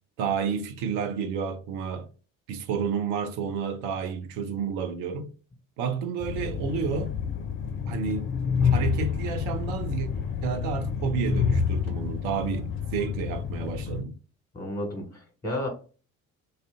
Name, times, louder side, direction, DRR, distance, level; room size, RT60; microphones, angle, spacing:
voice 1, 0.2-2.1 2.5-5.3 5.8-7.1 7.9-8.3 8.6-10.1 10.4-14.2, right 6 dB, 65° right, 0.6 m, -30 dB
Train, 6.2-14.0, left 6 dB, 30° left, 0.5 m, -28 dB
voice 2, 14.5-15.7, left 1 dB, 10° left, 1.2 m, -32 dB
2.4 x 2.2 x 3.5 m
figure-of-eight pair, 50°, 41 cm